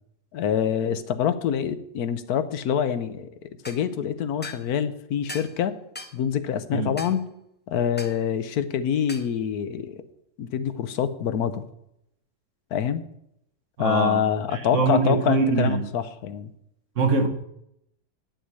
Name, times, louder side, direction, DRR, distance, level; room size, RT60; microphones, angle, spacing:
voice 1, 0.3-3.3 3.7-5.8 6.1-7.3 7.7-10.0 10.4-11.6 12.7-13.0 13.8-16.5, left 8 dB, 70° left, 1.2 m, -26 dB
sound 1, 3.6-3.8 4.4-4.6 5.3-5.6 6.0-6.2 7.0-7.2 8.0-8.2 9.1-9.3, left 1 dB, 15° left, 0.3 m, -39 dB
voice 2, 13.8-14.2 14.5-15.8 17.0-17.3, right 4 dB, 50° right, 1.4 m, -23 dB
9.5 x 6.3 x 8.3 m
omnidirectional pair, 1.7 m